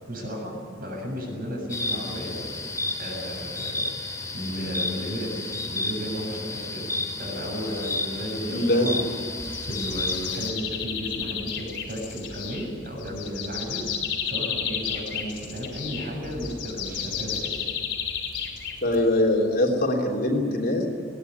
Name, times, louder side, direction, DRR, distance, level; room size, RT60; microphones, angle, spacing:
voice 1, 0.1-0.5 0.8-2.4 3.0-3.8 4.2-6.9 7.2-9.1 9.7-13.9 14.2-17.5, equal, 55° right, 1 dB, 7.5 m, -34 dB
sound 1, 1.7-10.5, left 2 dB, 20° left, 2.9 m, -32 dB
voice 2, 8.5-9.1 18.8-20.9, left 1 dB, 55° left, 0 dB, 3.3 m, -22 dB
sound 2, 9.4-19.2, left 7 dB, 85° left, 4.0 m, -32 dB
20.5 x 18.5 x 9.6 m, 2.2 s
head